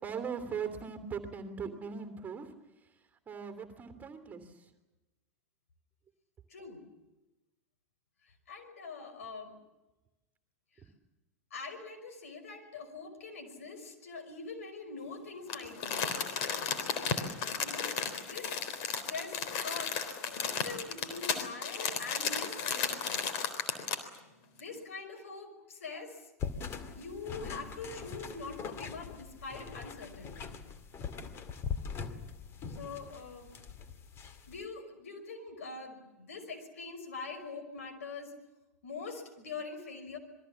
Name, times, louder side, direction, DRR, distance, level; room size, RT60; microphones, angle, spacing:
voice 1, 0.0-2.5 3.3-4.5, right 6 dB, 20° right, 8 dB, 3.0 m, -39 dB
voice 2, 6.5-6.9 8.5-9.5 11.5-16.2 17.6-18.6 18.9-23.2 24.6-26.3 27.0-30.5 32.7-33.5 34.5-38.3 38.8-40.2, left 4 dB, 70° left, 7 dB, 5.5 m, -44 dB
Crumpling crinkling, 15.5-24.2 24.6-24.7, left 6 dB, 50° left, 3.7 m, -34 dB
sound 1, 26.4-34.6, left 6 dB, 30° left, 2.2 m, -42 dB
27.5 x 22.0 x 7.3 m, 1.0 s
figure-of-eight pair, 90°, 8 cm